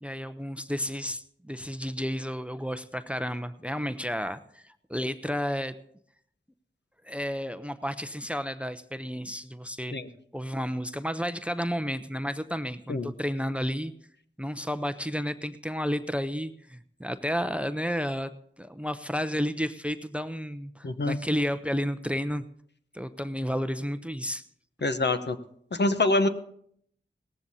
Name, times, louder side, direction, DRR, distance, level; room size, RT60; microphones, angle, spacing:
voice 1, 0.0-5.8 7.0-10.0 10.3-13.9 14.4-18.3 18.6-22.4 22.9-24.5, equal, 5° right, 12 dB, 0.6 m, -32 dB
voice 2, 20.8-21.2 24.8-25.4 25.7-26.3, left 2 dB, 60° left, 9 dB, 0.9 m, -25 dB
18.5 x 14.5 x 2.7 m, 0.67 s
wide cardioid pair, 55°, 20 cm